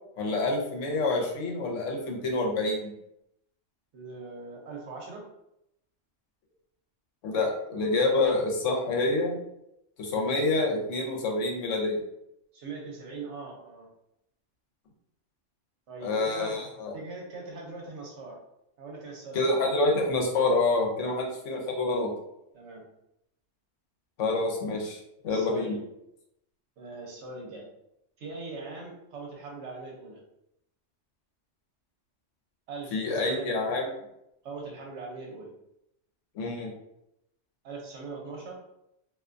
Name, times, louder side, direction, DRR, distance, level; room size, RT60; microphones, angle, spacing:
voice 1, 0.2-2.9 7.2-9.4 10.0-12.0 16.0-16.9 19.3-22.1 24.2-25.0 25.2-25.8 32.9-33.9 36.3-36.7, left 2 dB, 80° left, 0 dB, 1.0 m, -27 dB
voice 2, 3.9-5.2 12.5-13.9 15.9-18.4 18.8-19.5 21.0-21.2 22.5-22.9 25.3-25.8 26.8-27.6 28.2-30.2 32.7-33.5 34.4-35.5 37.6-38.6, right 3 dB, 70° right, -1 dB, 0.9 m, -41 dB
2.5 x 2.2 x 2.4 m, 0.82 s
omnidirectional pair, 1.3 m